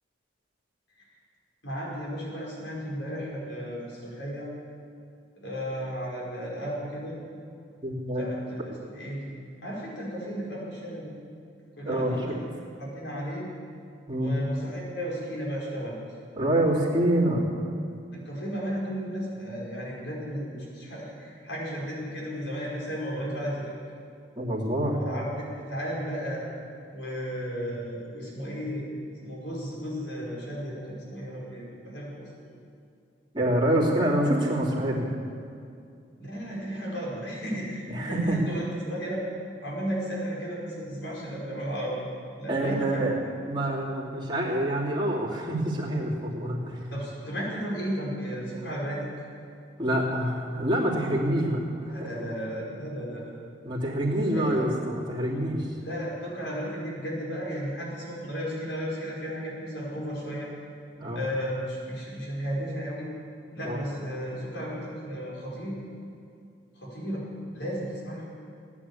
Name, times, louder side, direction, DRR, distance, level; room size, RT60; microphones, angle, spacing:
voice 1, 1.6-4.5 5.4-7.2 8.2-11.1 11.8-13.5 14.2-16.0 18.1-23.6 24.9-26.4 26.9-28.8 29.2-32.3 36.2-39.2 39.6-43.2 46.9-49.1 51.9-53.3 54.1-54.6 55.8-60.5 61.1-63.1 63.5-65.8 66.8-67.3 67.5-68.3, equal, 80° left, -4 dB, 5.2 m, -34 dB
voice 2, 7.8-8.3 11.8-12.3 14.1-14.3 16.4-17.4 24.4-25.0 33.3-35.1 37.9-38.4 42.5-43.2 43.5-47.0 49.8-51.6 51.9-52.3 53.6-55.7 61.0-61.3 63.6-63.8, right 1 dB, 25° right, -5 dB, 3.0 m, -26 dB
17.0 x 10.0 x 8.5 m, 2.4 s
head